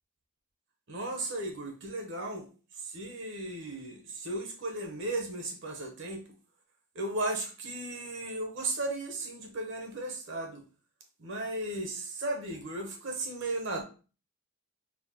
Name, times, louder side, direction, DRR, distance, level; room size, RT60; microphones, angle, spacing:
voice 1, 0.9-2.5 2.7-6.3 6.9-10.6 11.2-13.8, right 2 dB, 55° right, 3 dB, 0.8 m, -35 dB
4.3 x 2.3 x 2.7 m, 0.36 s
head